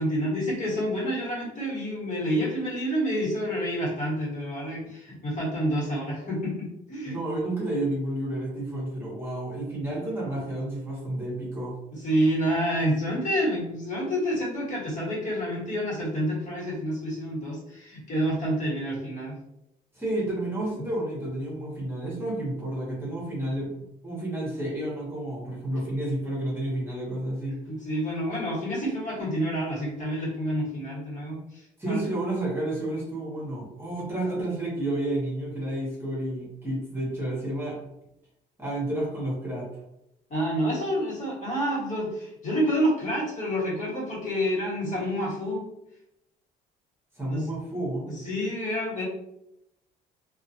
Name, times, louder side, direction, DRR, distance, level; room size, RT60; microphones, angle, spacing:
voice 1, 0.0-7.2 9.8-9.9 11.9-19.4 27.7-32.1 40.3-45.7 47.3-47.5 48.1-49.0, equal, 50° left, -6 dB, 1.4 m, -28 dB
voice 2, 7.0-11.8 19.9-27.6 31.8-37.8 38.6-39.7 47.1-48.0, right 1 dB, 15° right, -5 dB, 1.0 m, -31 dB
2.4 x 2.3 x 2.7 m, 0.84 s
cardioid pair, 110°, 17 cm